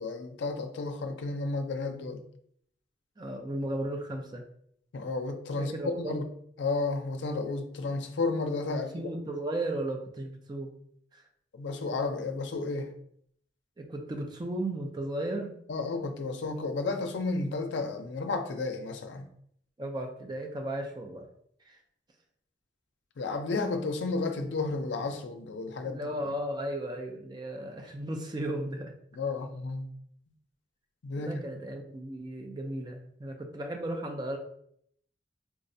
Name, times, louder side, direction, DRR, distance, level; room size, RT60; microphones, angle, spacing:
voice 1, 0.0-2.2 4.9-6.2 6.6-9.1 11.5-12.9 15.7-19.3 23.2-26.0 29.1-29.9 31.0-31.4, left 3 dB, 75° left, 6 dB, 0.4 m, -32 dB
voice 2, 3.2-4.4 5.6-6.2 8.7-10.7 11.1-11.2 13.8-15.5 19.8-21.3 21.7-21.8 25.8-28.9 31.2-34.4, right 1 dB, 25° right, 3 dB, 0.4 m, -35 dB
4.5 x 2.1 x 2.6 m, 0.68 s
head